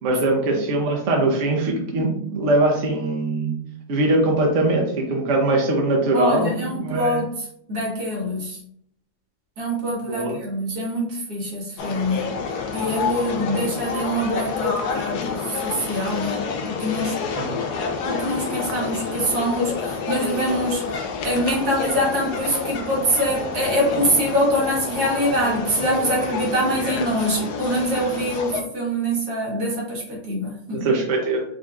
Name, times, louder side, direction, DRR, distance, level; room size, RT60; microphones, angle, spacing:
voice 1, 0.0-3.6 3.9-7.2 10.1-10.4 17.4-17.6 30.7-31.4, right 2 dB, 55° right, 0 dB, 1.0 m, -21 dB
voice 2, 6.1-8.6 9.6-12.3 12.7-17.1 18.0-20.9 21.2-30.9, equal, 80° right, -3 dB, 1.8 m, -24 dB
sound 1, 11.8-28.6, left 5 dB, 85° left, 1.2 m, -28 dB
4.8 x 2.8 x 2.3 m, 0.68 s
omnidirectional pair, 1.6 m